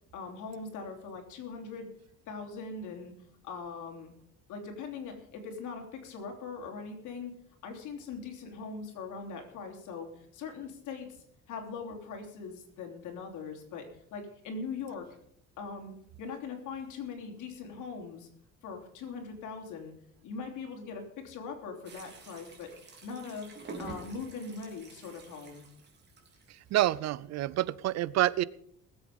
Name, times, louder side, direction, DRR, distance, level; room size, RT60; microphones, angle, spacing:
voice 1, 0.1-1.9 2.3-3.1 3.4-4.1 4.5-7.3 7.6-15.1 15.6-18.3 18.6-19.9 20.2-22.7 23.0-23.5 23.8-25.6, left 5 dB, 80° left, 3 dB, 3.3 m, -41 dB
sound 1, 21.8-26.9, right 3 dB, 35° right, 3.2 m, -48 dB
voice 2, 26.7-28.4, right 14 dB, 60° right, 20 dB, 0.5 m, -27 dB
20.0 x 8.0 x 5.2 m, 0.71 s
cardioid pair, 150°, 30 cm